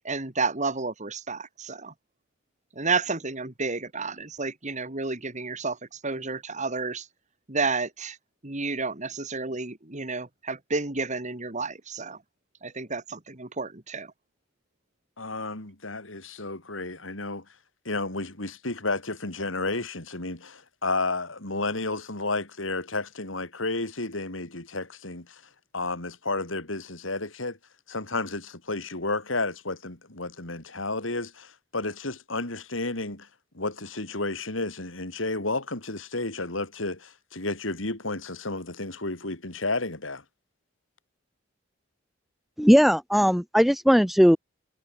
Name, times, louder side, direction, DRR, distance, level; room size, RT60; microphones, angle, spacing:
voice 1, 0.0-1.9 2.8-5.8 6.0-7.0 7.5-8.2 8.4-12.2 12.6-14.1, right 4 dB, 40° right, 2.6 m, -31 dB
voice 2, 15.2-17.4 17.8-25.4 25.7-27.6 27.9-33.3 33.5-40.2, left 2 dB, 75° left, 4.4 m, -32 dB
voice 3, 42.6-44.4, equal, ahead, 1.1 m, -18 dB
head